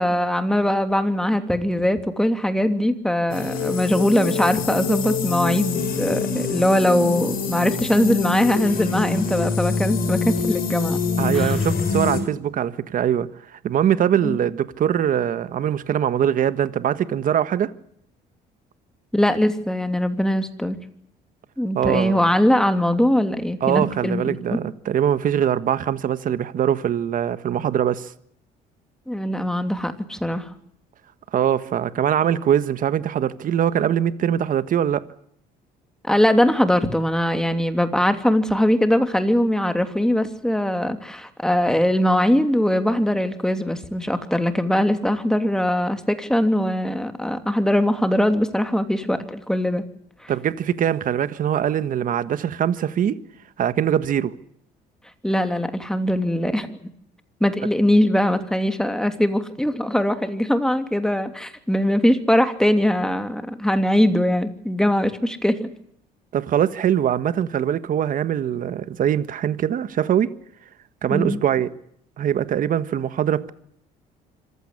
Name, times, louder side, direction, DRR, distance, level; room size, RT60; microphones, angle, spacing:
voice 1, 0.0-11.0 11.3-11.5 14.2-14.4 19.1-20.8 21.6-24.6 29.1-30.5 36.1-49.8 50.2-50.3 55.2-56.9 57.4-65.7 71.1-71.4, left 1 dB, 5° left, 2.9 m, -21 dB
sound 1, 3.3-12.2, left 4 dB, 55° left, 6.6 m, -25 dB
voice 2, 11.2-17.7 21.7-22.3 23.6-28.1 31.3-35.0 50.3-53.2 53.6-54.3 66.3-70.3 71.0-71.7 72.2-73.5, right 9 dB, 55° right, 1.5 m, -22 dB
26.0 x 15.5 x 9.9 m
cardioid pair, 110°, 17 cm